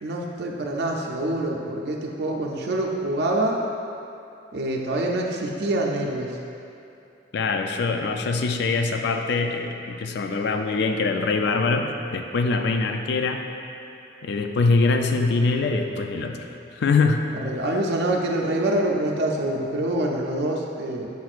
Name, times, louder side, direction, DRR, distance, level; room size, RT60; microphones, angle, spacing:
voice 1, 0.0-3.6 4.5-6.4 17.4-21.1, right 1 dB, 60° right, -1 dB, 0.4 m, -25 dB
voice 2, 7.3-13.4 14.2-17.3, left 3 dB, 65° left, 5 dB, 0.4 m, -23 dB
7.0 x 5.9 x 2.4 m, 2.7 s
head